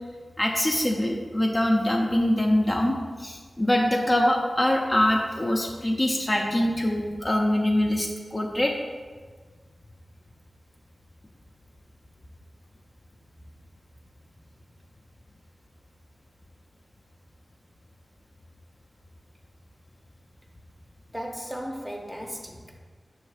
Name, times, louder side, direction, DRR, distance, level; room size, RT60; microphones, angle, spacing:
voice 1, 0.4-8.7, left 1 dB, 25° left, 0 dB, 0.5 m, -24 dB
voice 2, 21.1-22.8, equal, 5° right, 1 dB, 0.7 m, -36 dB
6.3 x 3.2 x 4.8 m, 1.5 s
wide cardioid pair, 90°, 0 cm